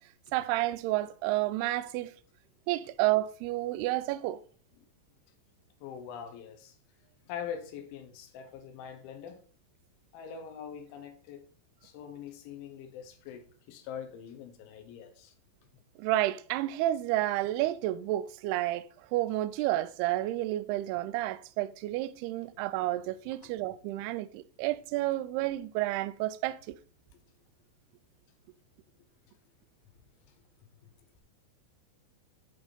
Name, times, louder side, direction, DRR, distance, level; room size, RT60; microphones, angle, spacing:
voice 1, 0.3-2.1 2.7-4.4 16.0-26.8, right 15 dB, 90° right, 2.3 m, -30 dB
voice 2, 5.8-6.8 7.2-9.4 10.1-11.4 11.8-15.4 23.4-23.5 30.8-30.9, left 8 dB, 90° left, 3.6 m, -43 dB
11.5 x 4.2 x 5.2 m
omnidirectional pair, 5.3 m